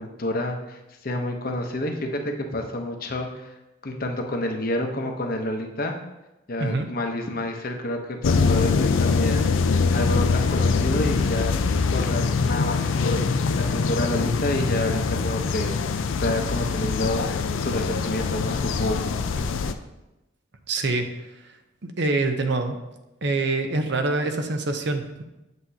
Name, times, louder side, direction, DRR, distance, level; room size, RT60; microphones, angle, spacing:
voice 1, 0.0-3.5 3.8-6.0 6.5-9.5 9.9-11.5 11.9-17.3 17.6-19.5, left 1 dB, 45° left, 3 dB, 0.8 m, -29 dB
sound 1, 8.2-19.7, left 4 dB, 75° left, 0.4 m, -23 dB
voice 2, 20.7-21.0 21.8-22.8 23.2-25.2, right 3 dB, 60° right, 6 dB, 0.7 m, -25 dB
8.1 x 7.4 x 2.8 m, 0.97 s
head